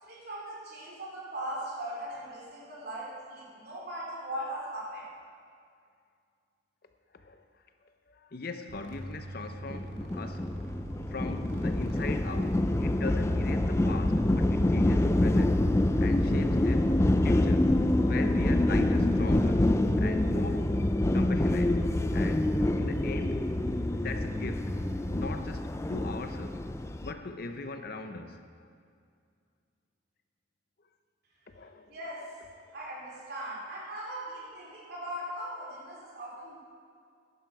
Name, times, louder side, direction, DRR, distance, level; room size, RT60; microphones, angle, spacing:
voice 1, 0.0-5.1 31.9-32.3 32.7-36.6, right 1 dB, 55° right, -4 dB, 3.0 m, -39 dB
voice 2, 8.1-10.5 11.1-15.6 16.0-16.9 17.2-19.7 20.0-20.7 21.1-21.8 22.1-23.4 23.9-24.8 25.1-26.6 27.0-28.7 31.5-31.9 32.7-32.8, left 3 dB, 55° left, 7 dB, 0.7 m, -40 dB
sound 1, 8.7-25.5, right 1 dB, 90° right, 1.5 m, -42 dB
sound 2, 9.7-27.1, left 1 dB, 15° left, 0.4 m, -26 dB
11.5 x 11.0 x 4.8 m, 2.2 s
head